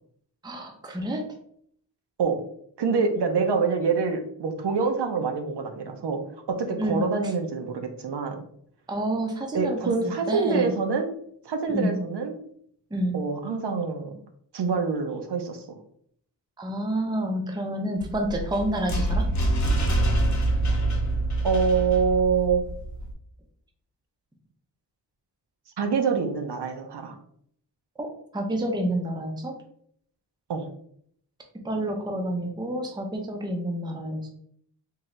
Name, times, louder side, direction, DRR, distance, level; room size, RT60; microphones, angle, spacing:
voice 1, 0.4-1.3 6.8-7.1 8.9-9.8 10.0-10.7 11.7-11.9 12.9-13.1 16.6-19.3 28.0-29.6 31.6-34.3, right 1 dB, 10° right, 3 dB, 0.5 m, -29 dB
voice 2, 2.8-6.2 6.5-8.4 9.5-11.1 11.4-12.3 13.1-14.2 14.5-15.6 21.4-22.7 25.8-27.2 30.5-30.7, right 5 dB, 65° right, 5 dB, 0.6 m, -25 dB
sound 1, 18.0-23.1, right 1 dB, 40° left, 0.8 m, -25 dB
3.8 x 2.7 x 3.1 m, 0.66 s
wide cardioid pair, 140°, 44 cm